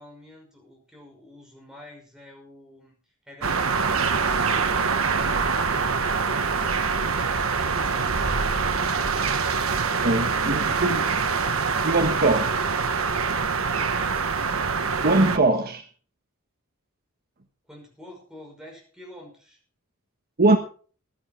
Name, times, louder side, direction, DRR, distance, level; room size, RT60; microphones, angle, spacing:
voice 1, 0.0-3.0 3.2-5.7 13.7-14.3 17.6-19.6, left 1 dB, 5° right, 5.9 m, -49 dB
sound 1, 3.4-15.4, right 5 dB, 70° right, 1.2 m, -24 dB
voice 2, 10.0-11.2 11.8-12.6 15.0-15.9 20.4-20.6, right 2 dB, 45° right, 1.2 m, -21 dB
16.0 x 11.0 x 4.4 m
head